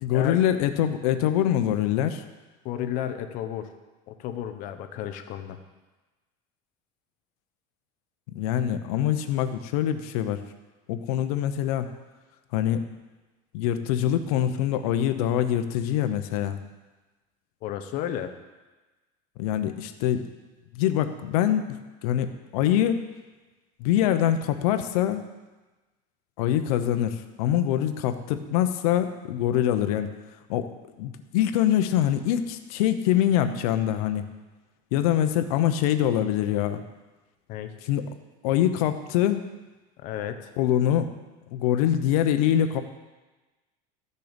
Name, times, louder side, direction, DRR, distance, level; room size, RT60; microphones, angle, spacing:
voice 1, 0.0-2.2 8.3-10.4 10.9-11.9 12.5-12.9 13.5-16.6 19.4-20.3 20.7-21.7 22.0-23.0 23.8-25.2 26.4-30.1 30.5-34.3 34.9-36.8 37.8-38.1 38.4-39.5 40.6-41.1 41.5-42.8, left 11 dB, 80° left, 9 dB, 0.9 m, -24 dB
voice 2, 2.6-3.7 4.1-5.6 17.6-18.3 37.5-37.7 40.0-40.5, left 10 dB, 45° left, 8 dB, 0.9 m, -32 dB
13.5 x 6.7 x 5.2 m, 1.2 s
cardioid pair, 170°, 19 cm